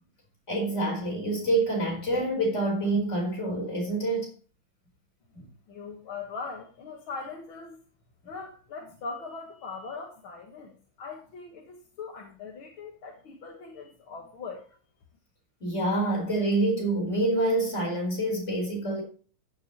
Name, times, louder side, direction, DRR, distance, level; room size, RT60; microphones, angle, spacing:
voice 1, 0.5-4.3 5.3-5.4 15.6-19.0, right 2 dB, 30° left, 4.9 m, -27 dB
voice 2, 5.7-7.8 8.2-14.7, left 4 dB, 70° left, 2.4 m, -40 dB
14.5 x 7.5 x 3.1 m
omnidirectional pair, 2.4 m